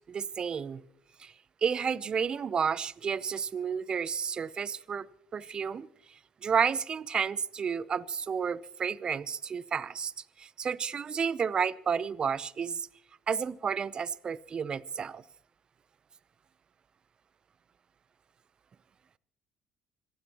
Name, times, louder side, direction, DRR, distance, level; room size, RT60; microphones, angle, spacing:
voice 1, 0.1-0.8 1.2-1.3 1.6-5.1 5.3-5.9 6.4-10.1 10.4-12.9 13.3-15.2, right 6 dB, 45° right, 0.7 m, -31 dB
26.5 x 15.5 x 3.0 m
supercardioid pair, 70°, 2 cm